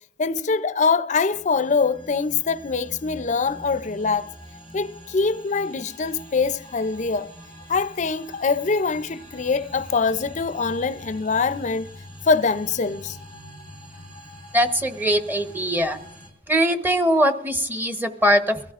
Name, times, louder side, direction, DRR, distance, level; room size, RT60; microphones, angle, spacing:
voice 1, 0.2-4.3 4.7-7.3 7.7-11.9 12.3-13.2, left 4 dB, 45° left, 0.5 m, -23 dB
sound 1, 1.3-16.3, equal, 45° right, 4.8 m, -44 dB
voice 2, 14.5-16.0 16.5-18.6, equal, 10° right, 1.0 m, -21 dB
23.0 x 16.0 x 2.5 m
head